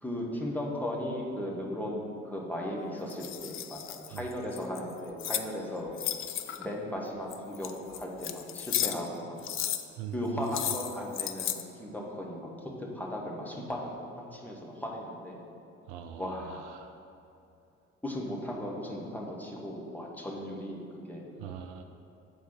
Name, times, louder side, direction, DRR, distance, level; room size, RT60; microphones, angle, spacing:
voice 1, 0.0-5.9 6.6-9.4 10.1-15.4 16.2-16.6 18.0-21.3, left 1 dB, 5° left, -3 dB, 1.3 m, -36 dB
sound 1, 3.1-5.5 5.9-6.7 7.3-9.1 9.4-9.8 10.5-11.6, left 11 dB, 35° left, 0.4 m, -34 dB
voice 2, 10.0-10.5 15.9-17.0 21.4-21.8, right 9 dB, 65° right, 6 dB, 0.5 m, -42 dB
7.3 x 4.0 x 4.7 m, 2.6 s
figure-of-eight pair, 45°, 37 cm